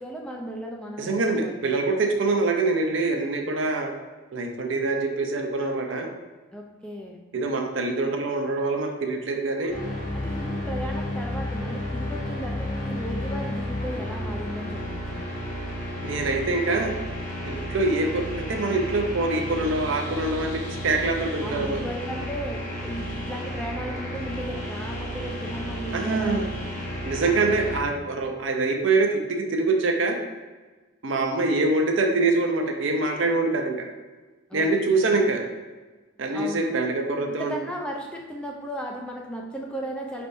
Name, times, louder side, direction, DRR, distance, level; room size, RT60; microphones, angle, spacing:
voice 1, 0.0-1.6 6.5-7.2 10.1-15.0 21.4-26.5 34.5-35.1 36.3-36.7 37.3-40.3, equal, 5° left, 0 dB, 0.3 m, -35 dB
voice 2, 1.0-3.9 4.3-6.1 7.3-9.7 16.0-16.9 17.4-21.8 25.9-26.5 27.0-30.2 31.0-33.9 34.5-35.4 36.2-37.5, right 3 dB, 65° right, 3 dB, 0.5 m, -24 dB
sound 1, 9.7-27.8, equal, 40° left, 1.1 m, -32 dB
5.3 x 3.4 x 2.6 m, 1.3 s
head